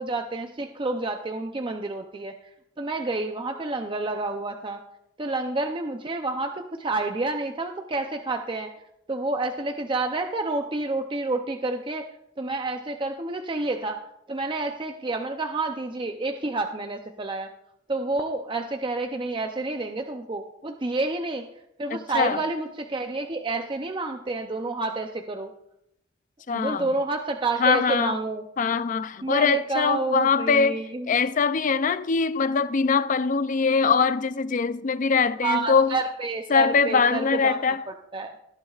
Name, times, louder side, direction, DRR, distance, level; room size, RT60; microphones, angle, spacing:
voice 1, 0.0-2.3 2.8-4.8 5.2-8.7 9.1-12.1 12.4-14.0 14.3-17.5 17.9-21.5 21.8-25.5 26.5-28.4 29.2-31.1 35.4-37.6 38.1-38.3, right 2 dB, 25° right, 0.6 m, -29 dB
voice 2, 21.9-22.4 26.5-26.9 27.6-28.2 28.6-36.0 36.5-37.8, left 5 dB, 45° left, 0.5 m, -22 dB
18.0 x 11.5 x 2.4 m
head